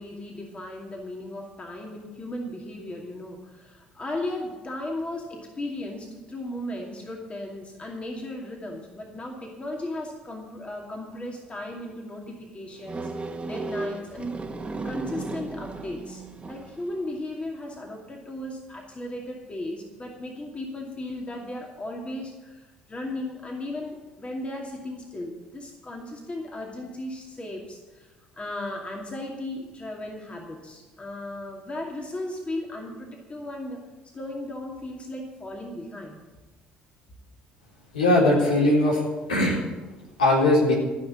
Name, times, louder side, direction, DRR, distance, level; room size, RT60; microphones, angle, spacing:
voice 1, 0.0-14.4 14.8-33.8 34.1-36.2, left 1 dB, 30° left, 0 dB, 2.5 m, -36 dB
sound 1, 12.8-16.9, right 3 dB, 25° right, 1.7 m, -35 dB
voice 2, 37.9-39.0 39.3-39.6 40.2-40.7, left 1 dB, 85° left, -3 dB, 3.8 m, -19 dB
14.5 x 5.9 x 10.0 m, 1.2 s
hypercardioid pair, 60°, 4 cm